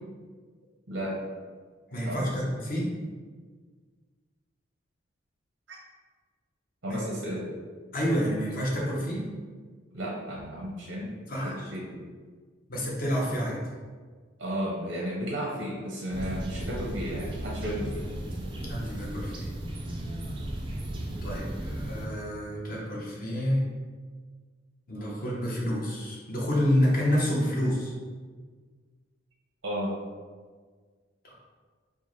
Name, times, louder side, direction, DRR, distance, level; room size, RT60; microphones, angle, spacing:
voice 1, 0.9-1.2 2.0-2.3 5.7-5.8 6.8-7.6 9.9-11.1 11.4-12.0 14.4-18.0 29.6-29.9, equal, 85° right, -4 dB, 0.8 m, -33 dB
voice 2, 1.9-2.9 6.9-7.0 7.9-9.3 11.3-11.7 12.7-13.6 18.7-19.5 21.2-23.6 24.9-27.9 31.2-31.3, equal, 45° left, -3 dB, 0.7 m, -28 dB
sound 1, 16.1-22.1, right 1 dB, 25° right, 0.3 m, -35 dB
4.4 x 2.1 x 3.0 m, 1.5 s
head